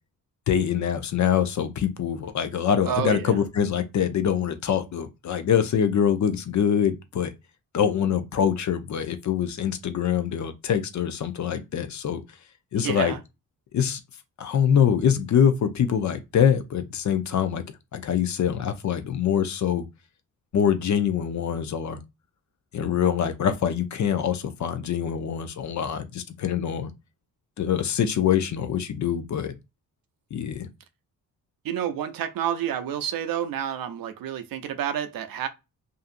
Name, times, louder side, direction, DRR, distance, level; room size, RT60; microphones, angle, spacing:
voice 1, 0.5-7.3 7.7-12.2 12.7-13.1 13.7-14.0 14.4-17.6 17.9-19.9 20.5-22.0 22.7-26.9 27.6-29.5 30.3-30.7, left 8 dB, 55° left, 0.6 m, -24 dB
voice 2, 2.8-3.4 12.8-13.2 31.6-35.5, right 10 dB, 75° right, 0.6 m, -29 dB
2.7 x 2.4 x 2.5 m
cardioid pair, 85°, 35 cm